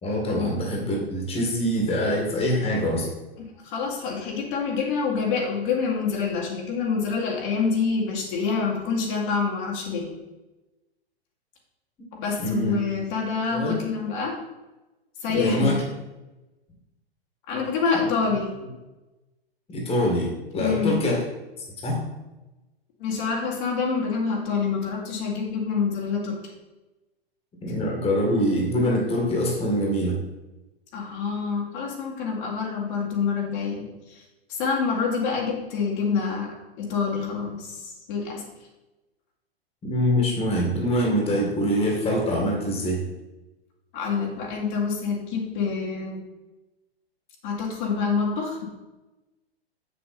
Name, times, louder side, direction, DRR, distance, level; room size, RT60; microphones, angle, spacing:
voice 1, 0.0-3.1 12.4-12.8 13.5-13.8 15.3-15.8 19.7-21.2 21.8-22.0 27.6-30.2 39.8-43.0, equal, 20° left, -1 dB, 2.0 m, -24 dB
voice 2, 3.6-10.1 12.1-14.4 15.2-15.8 17.5-18.6 20.6-21.0 23.0-26.4 30.9-34.2 34.5-38.4 43.9-46.2 47.4-48.7, left 5 dB, 50° left, -2 dB, 2.2 m, -27 dB
6.9 x 6.8 x 4.3 m, 1.1 s
hypercardioid pair, 115°, 31 cm